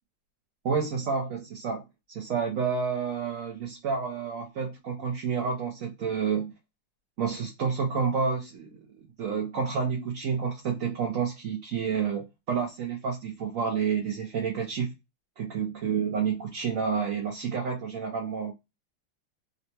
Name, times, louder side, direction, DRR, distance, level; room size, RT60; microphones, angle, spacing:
voice 1, 0.6-1.8 2.1-6.5 7.2-14.9 15.4-18.5, right 6 dB, 70° right, 0.7 m, -29 dB
3.9 x 2.2 x 2.9 m
omnidirectional pair, 2.3 m